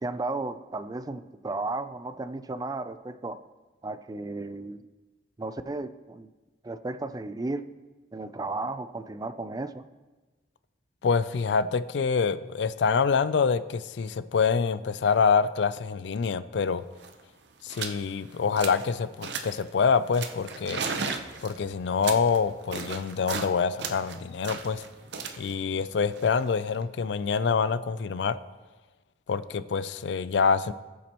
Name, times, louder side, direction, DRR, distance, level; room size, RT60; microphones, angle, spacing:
voice 1, 0.0-3.4 3.8-4.9 5.4-6.3 6.6-7.7 8.1-9.9, right 2 dB, 20° right, 12 dB, 0.3 m, -34 dB
voice 2, 11.0-16.8 17.6-20.8 21.4-24.8 25.4-28.4 29.3-30.7, left 5 dB, 65° left, 14 dB, 0.4 m, -26 dB
sound 1, 16.7-16.8 16.9-17.2 17.7-18.0 18.3-18.9 19.2-19.7 20.1-23.5 23.8-26.8, right 5 dB, 65° right, 0.8 m, -36 dB
19.5 x 7.3 x 3.0 m, 1.2 s
head